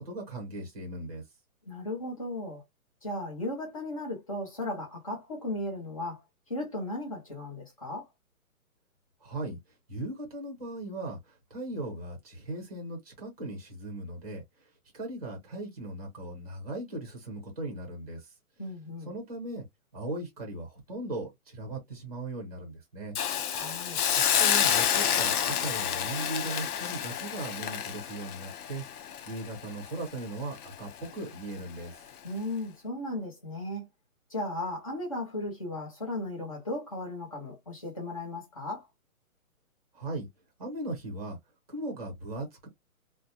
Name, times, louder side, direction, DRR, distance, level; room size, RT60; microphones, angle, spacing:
voice 1, 0.0-1.2 9.2-9.6 9.9-14.4 14.9-18.3 19.0-19.6 19.9-23.1 24.1-28.8 29.3-32.0 39.9-40.3 40.6-41.4 41.7-42.7, right 2 dB, 25° right, 0.7 m, -38 dB
voice 2, 1.7-2.6 3.0-6.2 6.5-8.1 18.6-19.1 23.5-24.0 32.2-33.9 34.3-38.9, left 1 dB, 25° left, 0.8 m, -36 dB
Hiss, 23.2-30.2 30.6-30.7, left 9 dB, 85° left, 0.6 m, -28 dB
2.7 x 2.1 x 2.5 m
hypercardioid pair, 180°, 44 cm